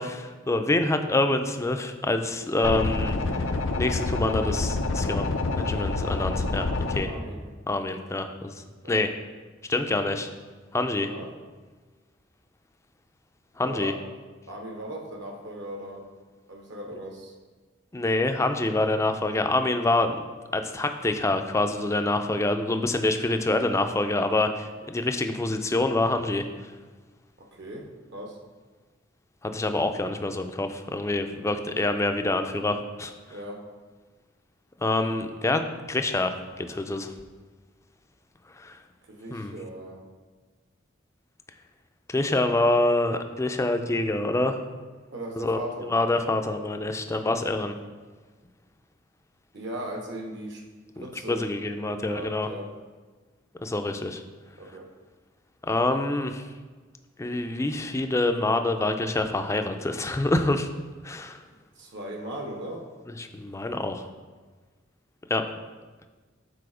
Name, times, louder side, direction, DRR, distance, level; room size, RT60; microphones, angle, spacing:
voice 1, 0.0-3.5 3.7-7.1 7.7-9.1 9.7-10.3 10.7-11.1 13.6-13.9 17.9-20.2 20.5-26.5 29.4-33.1 34.8-37.1 38.6-38.8 39.3-39.5 42.1-44.6 45.4-47.7 51.0-52.5 53.6-54.2 55.6-56.4 57.2-60.7 61.0-61.4 63.2-64.0 65.3-65.4, left 2 dB, 15° left, 7 dB, 0.4 m, -26 dB
sound 1, 2.6-7.0, left 2 dB, 85° left, 0.6 m, -27 dB
voice 2, 7.0-7.5 8.8-9.1 11.0-11.3 13.6-14.0 14.5-16.0 16.5-17.3 27.4-28.4 31.5-31.6 33.3-33.6 39.1-40.0 45.1-45.9 49.5-50.6 50.9-52.7 54.6-54.9 61.8-62.9, right 1 dB, 65° right, 2 dB, 1.0 m, -38 dB
6.9 x 4.1 x 4.9 m, 1.4 s
head